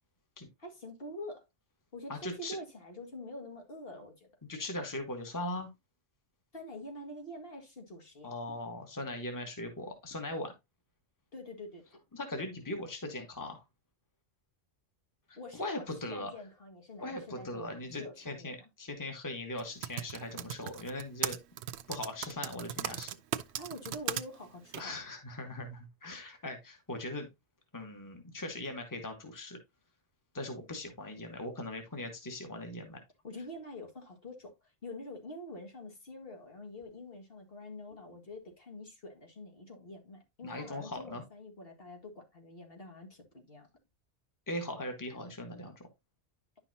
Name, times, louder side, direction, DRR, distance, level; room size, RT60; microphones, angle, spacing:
voice 1, 0.6-1.5 1.9-4.3 6.5-8.3 11.3-12.0 15.4-18.5 23.6-25.0 33.2-43.7, left 1 dB, 60° left, 2.2 m, -46 dB
voice 2, 2.1-2.6 4.5-5.7 8.2-10.5 12.1-13.6 15.3-16.3 17.0-21.4 21.9-23.1 24.8-27.3 27.7-29.6 30.3-33.0 40.4-41.2 44.5-45.7, left 1 dB, 15° left, 1.5 m, -39 dB
Typing, 19.6-24.2 24.7-24.8, right 10 dB, 80° right, 0.9 m, -36 dB
10.5 x 5.7 x 2.7 m
omnidirectional pair, 1.1 m